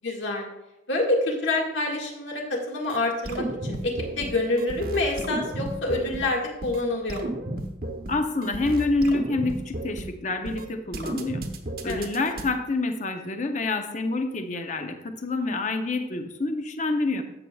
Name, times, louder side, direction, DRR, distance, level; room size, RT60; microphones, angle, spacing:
voice 1, 0.0-0.5 0.9-7.4 11.8-12.1, left 2 dB, 75° left, -1 dB, 1.8 m, -27 dB
sound 1, 2.9-3.0 3.3-4.3 4.6-6.2 6.6-6.8 7.1-8.1 8.4-10.0 10.5-10.7 10.9-12.4, right 1 dB, 50° right, 1.0 m, -33 dB
voice 2, 8.1-11.4 11.8-17.2, left 2 dB, 40° left, 6 dB, 0.7 m, -27 dB
12.5 x 7.6 x 2.3 m, 0.92 s
head